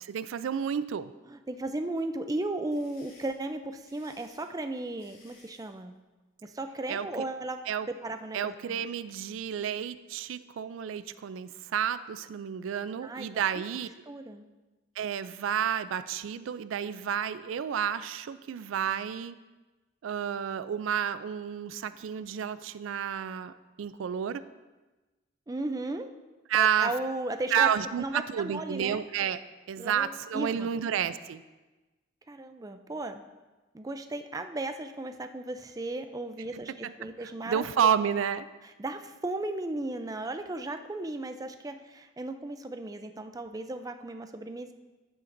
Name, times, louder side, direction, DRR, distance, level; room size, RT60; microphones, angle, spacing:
voice 1, 0.1-1.1 6.9-7.3 7.7-7.9 8.3-13.9 15.0-19.4 20.0-24.5 26.5-26.9 27.5-29.4 29.7-31.4 36.5-36.9 37.2-38.5, right 8 dB, 90° right, 14 dB, 0.3 m, -30 dB
voice 2, 1.3-6.0 6.4-7.6 8.0-8.8 13.0-13.6 14.1-14.4 25.5-26.1 26.5-27.7 28.0-29.0 29.8-30.7 32.3-33.2 33.7-38.0 38.8-44.7, right 2 dB, 20° right, 7 dB, 0.4 m, -35 dB
sound 1, 2.4-5.7, left 3 dB, 45° left, 2.5 m, -59 dB
10.5 x 8.5 x 2.6 m, 1.2 s
head